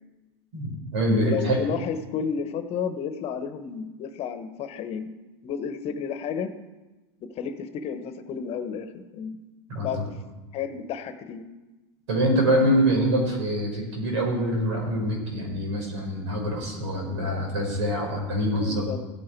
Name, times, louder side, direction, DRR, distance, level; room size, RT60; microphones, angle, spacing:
voice 1, 0.5-1.6 9.7-10.1 12.1-18.9, equal, 80° right, 0 dB, 5.2 m, -25 dB
voice 2, 1.2-5.1 5.4-6.5 7.2-9.4 9.8-10.2 10.5-11.4 18.6-19.0, left 6 dB, 45° left, 10 dB, 1.1 m, -32 dB
15.5 x 8.8 x 4.7 m, 1.1 s
supercardioid pair, 115°, 15 cm